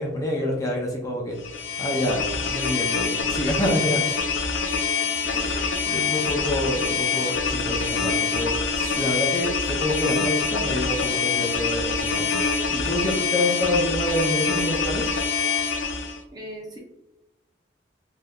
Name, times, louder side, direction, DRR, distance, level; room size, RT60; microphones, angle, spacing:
voice 1, 0.0-4.0 5.2-15.1, left 1 dB, 20° left, -1 dB, 0.5 m, -27 dB
sound 1, 1.4-16.2, left 5 dB, 85° left, 0.4 m, -25 dB
voice 2, 5.1-5.8 16.3-16.8, equal, 20° right, 0 dB, 0.6 m, -40 dB
3.4 x 2.7 x 2.2 m, 0.93 s
head